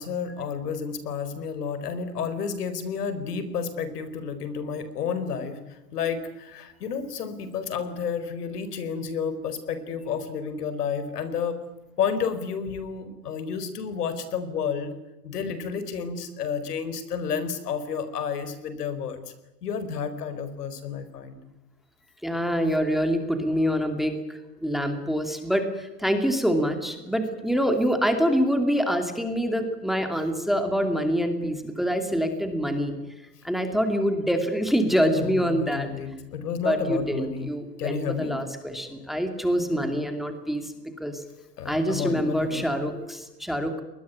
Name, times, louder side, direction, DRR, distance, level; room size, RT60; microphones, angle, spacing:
voice 1, 0.0-11.6 12.0-15.0 15.2-19.3 19.6-21.4 34.9-37.5 37.8-38.4 41.6-42.7, left 6 dB, 75° left, 12 dB, 4.6 m, -31 dB
voice 2, 22.2-32.9 33.4-35.9 36.6-40.7 41.0-41.2 41.6-43.8, equal, ahead, 6 dB, 2.6 m, -25 dB
23.5 x 20.5 x 9.6 m, 1.0 s
hypercardioid pair, 140°, 47 cm